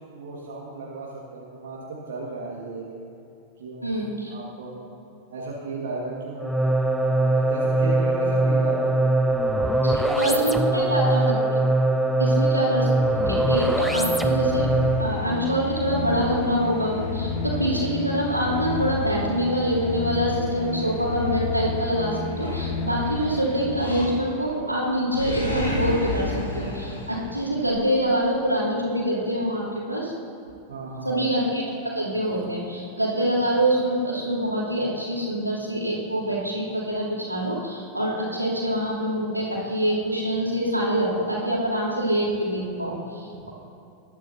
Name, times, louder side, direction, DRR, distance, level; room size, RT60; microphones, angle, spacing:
voice 1, 0.1-2.8 3.6-5.0 5.3-9.3 9.8-11.1 12.1-12.5 30.7-31.3 43.3-43.5, right 3 dB, 60° right, -4 dB, 1.8 m, -35 dB
voice 2, 3.8-4.3 9.8-11.6 12.2-12.9 13.3-14.7 15.0-30.1 31.0-43.5, equal, 90° right, -6 dB, 3.1 m, -25 dB
sound 1, 6.4-15.2, right 2 dB, ahead, 0.6 m, -22 dB
sound 2, 12.7-24.4, left 3 dB, 55° left, 2.8 m, -31 dB
Animal, 22.4-23.2 23.7-24.5 24.8-27.8, left 1 dB, 80° left, 3.2 m, -31 dB
19.5 x 12.0 x 2.8 m, 2.7 s
figure-of-eight pair, 90°, 0 cm